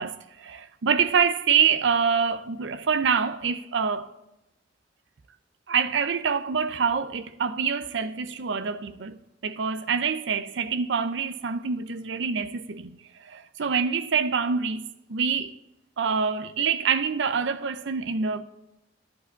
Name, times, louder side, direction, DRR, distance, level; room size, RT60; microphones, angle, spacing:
voice 1, 0.0-4.1 5.7-12.9 13.2-15.5 16.0-18.4, right 6 dB, 80° right, 0.5 m, -26 dB
11.0 x 4.7 x 8.2 m
head